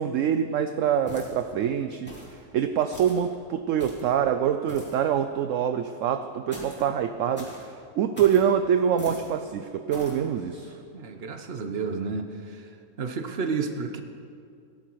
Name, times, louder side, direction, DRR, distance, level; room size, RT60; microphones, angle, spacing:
voice 1, 0.0-2.1 2.5-7.5 8.0-10.7, right 8 dB, 70° right, 9 dB, 0.8 m, -25 dB
sound 1, 1.1-1.5 2.1-2.4 2.9-3.2 3.8-4.1 4.7-5.0 6.5-6.9 7.3-7.6 8.1-8.4 9.0-9.3 9.9-10.2, equal, 5° left, 3.1 m, -42 dB
voice 2, 10.9-12.7 13.0-14.0, right 4 dB, 45° right, 6 dB, 1.0 m, -31 dB
17.5 x 11.0 x 4.6 m, 2.3 s
omnidirectional pair, 1.6 m